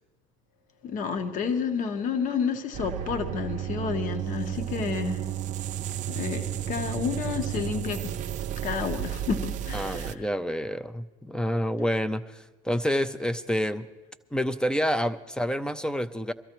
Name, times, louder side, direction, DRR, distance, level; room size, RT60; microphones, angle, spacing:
voice 1, 0.8-5.2 6.1-8.1 8.6-10.1, left 6 dB, 45° left, 7 dB, 1.2 m, -30 dB
sound 1, 2.7-10.2, right 11 dB, 45° right, 0.5 m, -32 dB
voice 2, 9.7-13.9 14.3-16.3, equal, 5° left, 12 dB, 0.6 m, -28 dB
23.0 x 13.5 x 3.0 m, 1.2 s
supercardioid pair, 90°, 18 cm